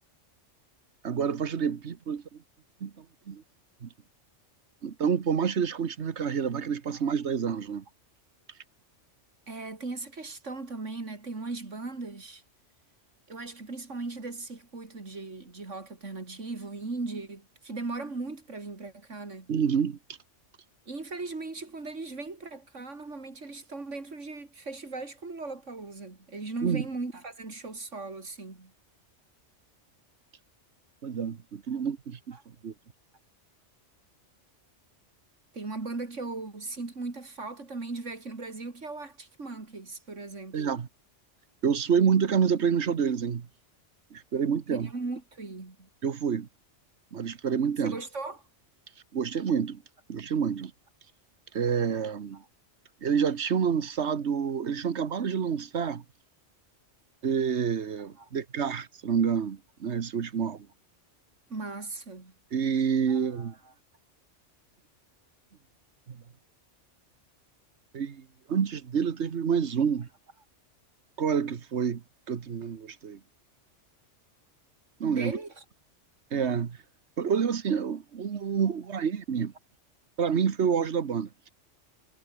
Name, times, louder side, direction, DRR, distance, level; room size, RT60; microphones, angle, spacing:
voice 1, 1.0-2.2 2.8-3.4 3.8-3.9 4.8-7.8 19.5-20.0 26.6-26.8 31.0-32.4 32.6-32.7 40.5-40.9 41.6-43.5 44.1-44.9 46.0-46.5 47.1-48.0 49.1-49.8 50.1-50.7 51.5-52.4 53.0-56.0 57.2-60.7 62.5-63.5 66.1-66.2 67.9-70.1 71.2-73.2 75.0-75.3 76.3-76.8 77.2-79.5 80.2-81.5, right 7 dB, 65° right, 1.5 m, -28 dB
voice 2, 9.5-12.4 13.3-19.5 20.9-28.7 31.7-31.8 32.3-32.4 35.5-40.7 44.7-45.9 47.8-48.4 52.3-52.5 58.2-58.3 61.5-62.3 63.1-63.7 75.1-75.6, right 3 dB, 85° right, 3.7 m, -38 dB
omnidirectional pair, 1.2 m